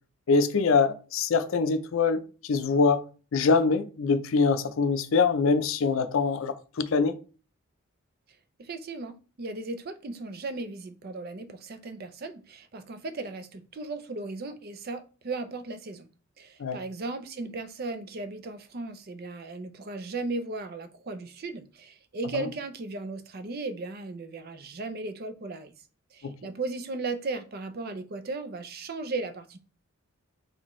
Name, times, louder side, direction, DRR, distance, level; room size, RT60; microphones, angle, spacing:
voice 1, 0.3-3.0 3.3-7.1 16.6-16.8 22.3-22.5 26.2-26.3, left 4 dB, 70° left, 0.5 m, -24 dB
voice 2, 8.6-16.1 16.4-25.7 26.1-29.6, right 3 dB, 45° right, 0.5 m, -36 dB
4.2 x 3.3 x 3.1 m
head